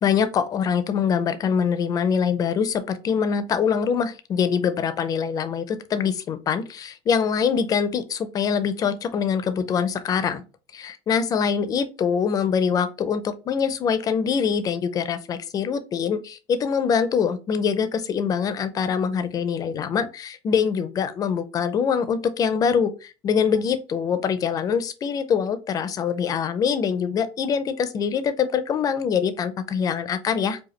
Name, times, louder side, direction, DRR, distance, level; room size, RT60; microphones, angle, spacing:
voice 1, 0.0-10.4 10.7-30.6, left 7 dB, 25° left, 11 dB, 0.4 m, -24 dB
4.9 x 2.3 x 3.1 m, 0.32 s
cardioid pair, 155°, 14 cm